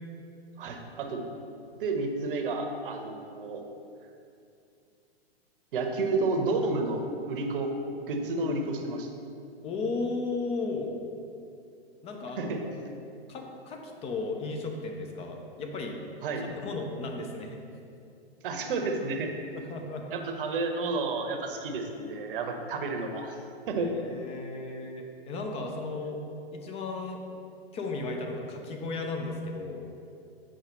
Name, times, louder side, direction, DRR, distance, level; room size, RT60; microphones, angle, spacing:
voice 1, 0.6-1.3 1.8-3.6 5.7-7.7 8.1-9.1 12.4-12.6 16.2-16.5 18.4-19.4 20.1-23.4 23.7-23.9, right 3 dB, 60° right, 4 dB, 0.8 m, -31 dB
voice 2, 9.6-10.9 12.0-12.6 13.3-16.0 16.5-17.6 19.5-20.1 23.8-26.2 26.5-27.2 27.7-29.8, left 3 dB, 20° left, 2 dB, 0.5 m, -35 dB
7.2 x 4.7 x 3.0 m, 2.5 s
figure-of-eight pair, 110°, 31 cm